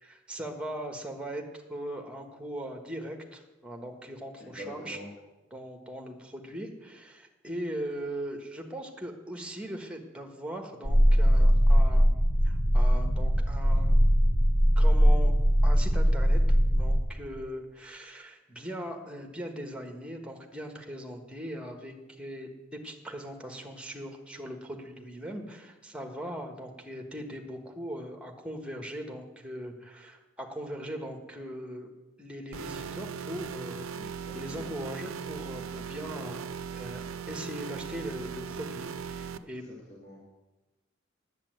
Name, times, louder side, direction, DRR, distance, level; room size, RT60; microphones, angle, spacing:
voice 1, 0.0-5.0 5.5-12.1 12.4-14.0 14.8-15.3 15.6-16.4 16.7-31.9 32.2-36.5 36.7-37.0 37.3-39.6, equal, 5° right, 3 dB, 1.3 m, -40 dB
voice 2, 4.4-5.1 33.9-34.7 39.4-40.3, equal, 35° left, -5 dB, 2.4 m, -46 dB
sound 1, 10.8-17.0, equal, 80° left, 1.4 m, -21 dB
sound 2, 32.5-39.4, right 6 dB, 90° right, 0.6 m, -38 dB
10.0 x 8.2 x 7.7 m, 1.1 s
head